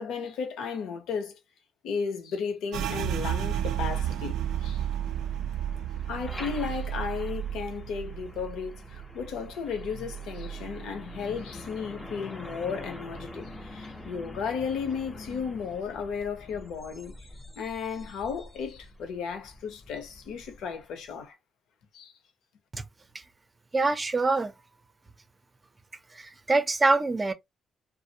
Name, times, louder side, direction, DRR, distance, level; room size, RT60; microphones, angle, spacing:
voice 1, 0.0-1.4 1.8-4.8 6.1-17.2 17.6-21.4 21.9-22.1, left 6 dB, 85° left, 0.8 m, -34 dB
sound 1, 2.7-12.1 12.4-13.7 14.0-14.5 14.9-15.5, right 10 dB, 80° right, 0.3 m, -34 dB
Truck, 3.5-21.1, left 2 dB, 25° left, 0.7 m, -46 dB
voice 2, 23.7-24.5 26.1-27.3, right 3 dB, 25° right, 0.5 m, -25 dB
2.4 x 2.0 x 2.8 m
cardioid pair, 90°, 0 cm